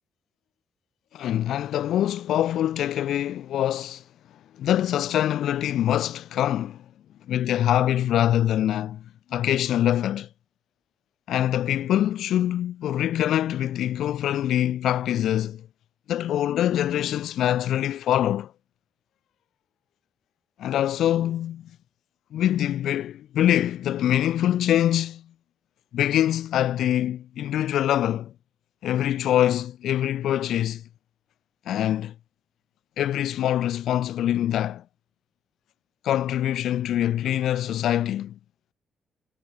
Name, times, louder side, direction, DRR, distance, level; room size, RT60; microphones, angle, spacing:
voice 1, 1.1-4.0 4.6-6.8 7.3-9.0 9.3-10.3 11.3-15.7 16.1-18.5 20.6-21.7 22.3-25.3 25.9-28.3 28.8-30.8 31.7-32.1 33.0-34.8 36.0-38.4, left 11 dB, 80° left, 1.4 m, -24 dB
cardioid pair, 85°, 0 cm